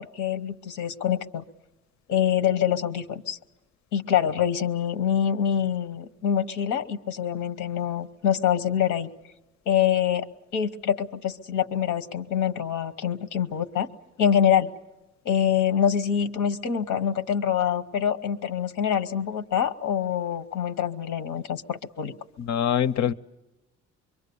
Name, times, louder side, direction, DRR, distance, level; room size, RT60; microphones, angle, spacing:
voice 1, 0.0-1.4 2.1-3.4 3.9-9.1 9.7-10.3 10.5-13.9 14.2-14.7 15.2-22.1, left 9 dB, 90° left, 1.1 m, -25 dB
voice 2, 22.4-23.1, left 9 dB, 65° left, 0.7 m, -24 dB
25.0 x 23.0 x 7.0 m
cardioid pair, 90°, 30 cm